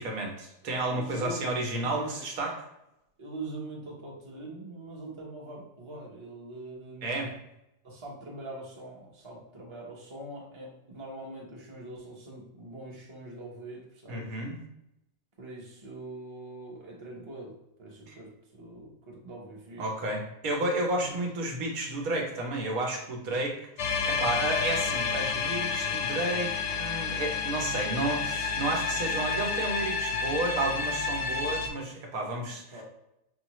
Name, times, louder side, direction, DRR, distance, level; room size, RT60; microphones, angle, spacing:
voice 1, 0.0-2.6 7.0-7.3 14.1-14.6 18.1-18.2 19.8-32.8, right 2 dB, 85° right, 1 dB, 1.3 m, -32 dB
voice 2, 0.9-2.3 3.2-7.4 7.8-14.4 15.4-20.0 21.0-21.1 32.7-32.8, right 2 dB, 25° right, -2 dB, 0.8 m, -43 dB
sound 1, 23.8-31.7, left 5 dB, 65° left, 0.8 m, -30 dB
5.5 x 2.4 x 3.0 m, 0.84 s
omnidirectional pair, 1.4 m